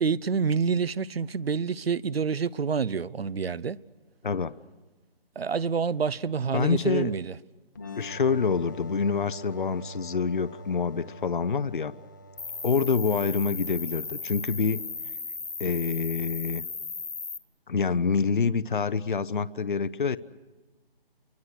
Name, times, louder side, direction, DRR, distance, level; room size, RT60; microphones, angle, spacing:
voice 1, 0.0-3.8 5.4-7.3, right 5 dB, 75° right, 0.7 m, -27 dB
voice 2, 4.2-4.5 6.5-7.1 8.0-11.9 12.6-14.8 15.6-16.7 17.7-20.2, left 5 dB, 55° left, 0.7 m, -26 dB
sound 1, 7.8-15.2, right 1 dB, 20° left, 0.8 m, -45 dB
Cricket, 12.4-17.4, left 4 dB, 80° left, 1.8 m, -36 dB
27.5 x 24.0 x 6.5 m
figure-of-eight pair, 170°, 30 cm